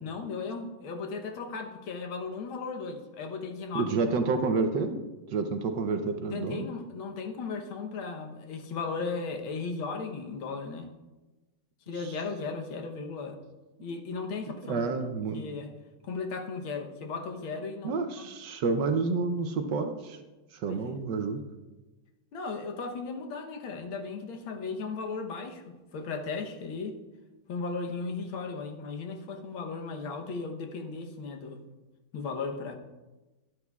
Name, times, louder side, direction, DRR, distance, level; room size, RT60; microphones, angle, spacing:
voice 1, 0.0-4.1 6.3-10.9 11.9-13.4 13.8-14.9 15.3-15.7 16.0-18.2 20.6-20.9 22.3-27.0 27.5-31.6 32.1-32.7, left 4 dB, 80° left, 4 dB, 1.8 m, -36 dB
voice 2, 3.7-5.0 5.3-6.7 13.8-13.9 14.6-15.4 17.8-20.2 20.5-21.4, right 4 dB, 70° right, 7 dB, 1.2 m, -29 dB
12.0 x 11.0 x 2.4 m, 1.1 s
omnidirectional pair, 2.2 m